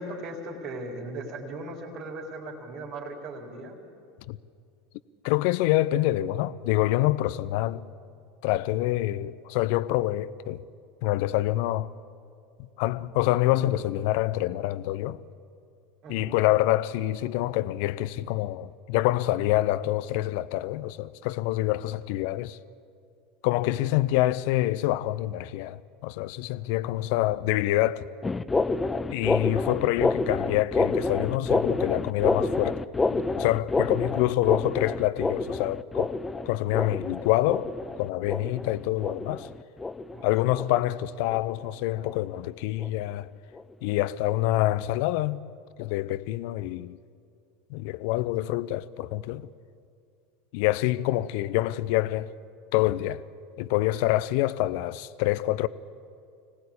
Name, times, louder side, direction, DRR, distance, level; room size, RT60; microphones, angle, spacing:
voice 1, 0.0-3.8 16.0-16.4 40.1-40.3, right 2 dB, 50° right, 4.0 m, -38 dB
voice 2, 5.2-7.8 8.4-10.6 11.0-11.9 12.6-15.2 16.1-22.6 23.4-28.1 29.1-32.8 33.1-36.2 36.5-37.7 38.0-39.5 40.2-43.3 43.8-45.4 45.8-47.0 47.7-49.5 50.5-52.3 52.7-53.2 53.6-55.7, left 16 dB, 60° left, 0.7 m, -26 dB
sound 1, 28.2-41.0 41.3-41.6 42.0-42.3 42.8-43.0 43.5-43.6 44.3-44.4, left 3 dB, 15° left, 0.7 m, -28 dB
25.5 x 18.5 x 8.5 m
figure-of-eight pair, 80°, 0 cm